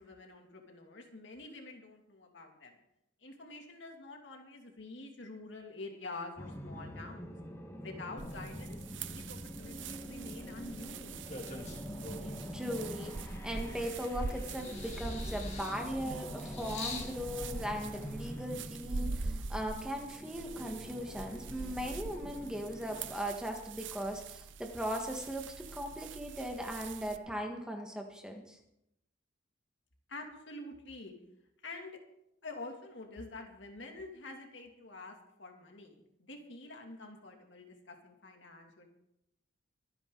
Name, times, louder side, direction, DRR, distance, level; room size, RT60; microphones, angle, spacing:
voice 1, 0.0-2.8 3.2-7.3 7.8-11.1 30.1-31.1 31.6-32.0 32.4-38.9, left 2 dB, 70° left, 2 dB, 2.6 m, -47 dB
sound 1, 6.4-23.2, equal, 15° left, 1.5 m, -46 dB
sound 2, 8.2-27.2, right 4 dB, 70° right, 0.7 m, -44 dB
sound 3, 10.6-12.5 13.0-14.1 14.5-17.2 18.1-18.2, left 2 dB, 35° left, 2.7 m, -44 dB
voice 2, 12.5-28.6, equal, 5° right, 3 dB, 1.5 m, -38 dB
24.5 x 9.9 x 3.9 m, 0.83 s
head